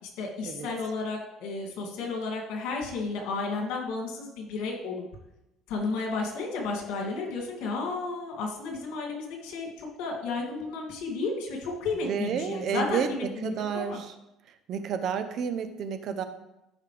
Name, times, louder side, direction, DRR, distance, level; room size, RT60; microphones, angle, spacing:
voice 1, 0.0-5.0 5.7-14.0, left 3 dB, 85° left, -1 dB, 2.6 m, -33 dB
voice 2, 12.1-14.1 14.7-16.2, right 7 dB, 50° right, 10 dB, 0.8 m, -30 dB
13.5 x 5.5 x 3.4 m, 0.92 s
cardioid pair, 145°, 0 cm